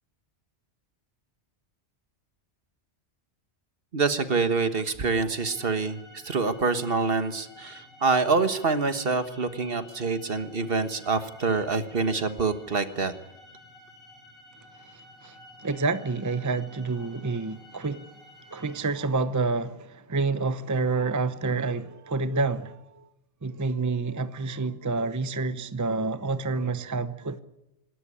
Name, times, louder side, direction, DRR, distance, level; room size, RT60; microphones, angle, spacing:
voice 1, 3.9-13.1, right 4 dB, 60° right, 1.6 m, -26 dB
sound 1, 5.3-18.8, left 1 dB, ahead, 6.8 m, -51 dB
voice 2, 15.6-18.0 18.5-22.8 23.4-27.4, right 3 dB, 20° right, 0.7 m, -28 dB
26.5 x 13.0 x 9.9 m
omnidirectional pair, 1.1 m